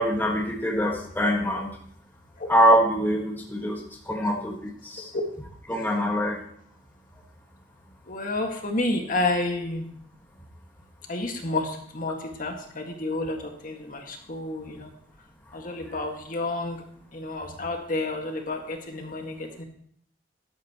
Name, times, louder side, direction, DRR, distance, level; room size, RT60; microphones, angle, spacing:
voice 1, 0.0-1.8 2.5-5.1 5.7-6.4, equal, 10° left, 0 dB, 1.5 m, -24 dB
voice 2, 8.1-9.9 11.1-14.9 15.5-16.8 17.1-19.6, left 2 dB, 50° left, 3 dB, 1.8 m, -30 dB
13.0 x 12.0 x 3.0 m, 0.63 s
head